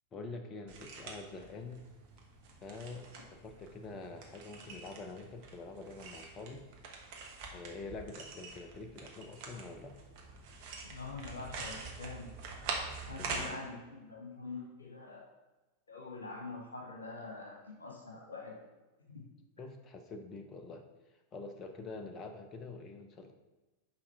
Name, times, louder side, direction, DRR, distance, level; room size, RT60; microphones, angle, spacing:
voice 1, 0.1-1.8 2.6-6.6 7.5-10.0 13.1-13.6 19.6-20.8 21.3-23.3, left 3 dB, 25° left, 5 dB, 0.7 m, -46 dB
Rubiks Cube, 0.7-13.5, right 4 dB, 50° right, 1.2 m, -45 dB
voice 2, 10.8-12.3 13.0-15.3 15.9-18.6 19.1-19.2, left 3 dB, 75° left, 0 dB, 1.3 m, -45 dB
5.7 x 4.9 x 5.4 m, 1.1 s
figure-of-eight pair, 90°, 0 cm